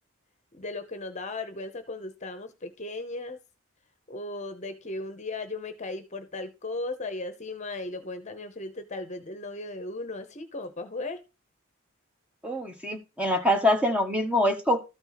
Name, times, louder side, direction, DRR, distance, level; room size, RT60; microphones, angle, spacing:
voice 1, 0.5-3.4 4.1-11.2, left 2 dB, 35° left, 9 dB, 0.9 m, -36 dB
voice 2, 12.4-14.8, left 1 dB, 5° right, 5 dB, 1.1 m, -24 dB
13.0 x 4.4 x 4.1 m, 0.28 s
head